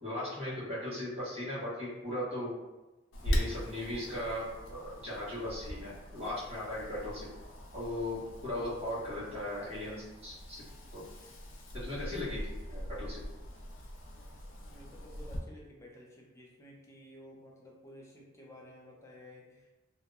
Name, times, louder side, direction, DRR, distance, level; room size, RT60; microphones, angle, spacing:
voice 1, 0.0-2.5 3.2-7.3 7.7-10.6 10.9-11.0 11.7-13.2, left 1 dB, 30° right, -10 dB, 1.3 m, -38 dB
Wind, 3.1-15.4, equal, 85° left, 0.4 m, -40 dB
voice 2, 14.6-19.7, left 1 dB, 15° left, -2 dB, 0.4 m, -53 dB
2.7 x 2.0 x 2.3 m, 1.1 s
head